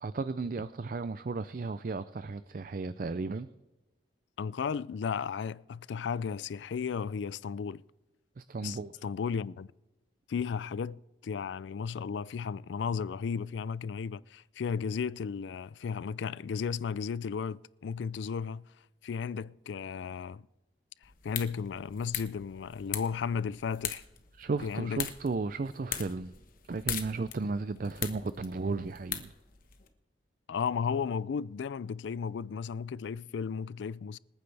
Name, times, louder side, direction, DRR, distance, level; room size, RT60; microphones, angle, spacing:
voice 1, 0.0-3.5 8.4-9.0 24.3-26.3 26.6-29.3, right 3 dB, 45° right, 0.4 m, -34 dB
voice 2, 4.4-7.8 8.6-9.7 10.3-18.6 19.0-20.5 21.0-24.0 24.6-25.0 30.5-34.2, left 6 dB, 75° left, 0.4 m, -34 dB
sound 1, 21.0-29.9, left 9 dB, 45° left, 1.2 m, -41 dB
26.5 x 9.4 x 3.4 m
head